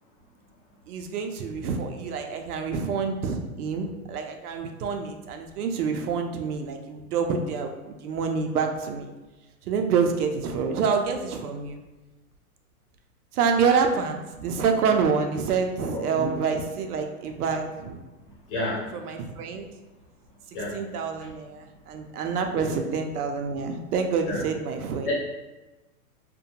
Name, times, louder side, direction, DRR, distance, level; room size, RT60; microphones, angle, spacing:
voice 1, 0.9-9.1 9.7-11.8 13.3-18.0 19.0-19.7 20.7-25.1, right 5 dB, 80° right, 4 dB, 0.6 m, -27 dB
voice 2, 15.9-16.3 18.3-18.9 20.5-20.8 21.1-21.3 22.3-22.7 24.2-24.4 25.0-25.1, left 2 dB, 35° left, -5 dB, 0.9 m, -32 dB
2.6 x 2.2 x 2.7 m, 1.1 s
hypercardioid pair, 160°, 44 cm